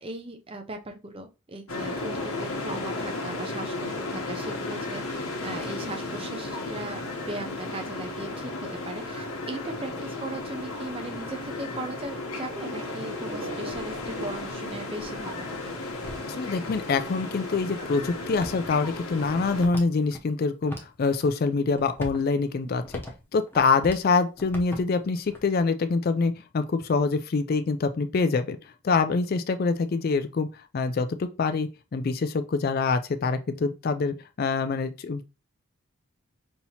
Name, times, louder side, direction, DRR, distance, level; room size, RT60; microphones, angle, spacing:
voice 1, 0.0-15.6, right 1 dB, 25° right, 0.5 m, -38 dB
sound 1, 1.7-19.7, left 2 dB, 85° left, 1.0 m, -34 dB
sound 2, 12.7-17.7, right 2 dB, 80° right, 0.8 m, -43 dB
sound 3, 13.7-16.6 17.3-17.4 18.0-20.2 20.6-21.3 21.7-24.1 24.3-25.6, equal, 10° left, 0.8 m, -43 dB
voice 2, 16.3-23.0 23.3-28.6 28.8-30.5 30.7-35.2, left 4 dB, 45° left, 0.3 m, -25 dB
5.5 x 2.9 x 2.8 m
head